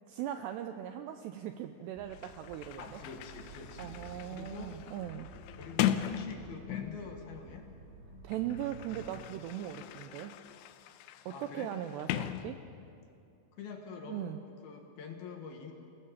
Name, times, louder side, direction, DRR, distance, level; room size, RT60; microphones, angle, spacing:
voice 1, 0.1-3.0 3.8-5.3 8.2-10.4 11.3-12.6 14.1-14.4, right 11 dB, 90° right, 8 dB, 2.4 m, -39 dB
Sliding door, 1.8-1.9 2.1-7.2 8.1-13.1, left 11 dB, 85° left, 2.4 m, -39 dB
sound 1, 2.0-9.2, right 3 dB, 60° right, 5.9 m, -51 dB
voice 2, 2.8-4.8 5.6-7.7 11.3-11.7 13.5-14.3 14.6-15.7, left 5 dB, 60° left, 3 dB, 2.9 m, -46 dB
28.5 x 18.0 x 7.4 m, 2.7 s
omnidirectional pair, 5.7 m